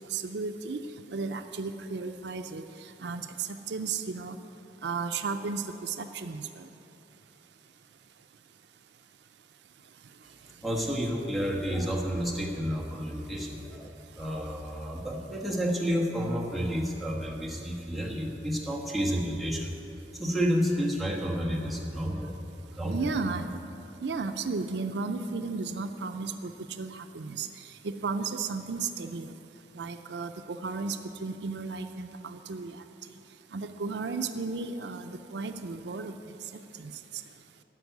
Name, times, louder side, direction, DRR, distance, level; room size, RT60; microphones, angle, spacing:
voice 1, 0.1-0.8 1.1-2.6 3.0-4.4 4.8-6.7 22.9-23.5 24.0-26.5 26.8-27.5 27.8-29.3 29.7-32.8 33.5-36.1 36.8-36.9, right 4 dB, 70° right, 8 dB, 0.5 m, -34 dB
voice 2, 10.6-19.7 20.1-23.1, equal, ahead, -4 dB, 1.3 m, -30 dB
13.0 x 5.4 x 9.2 m, 2.9 s
head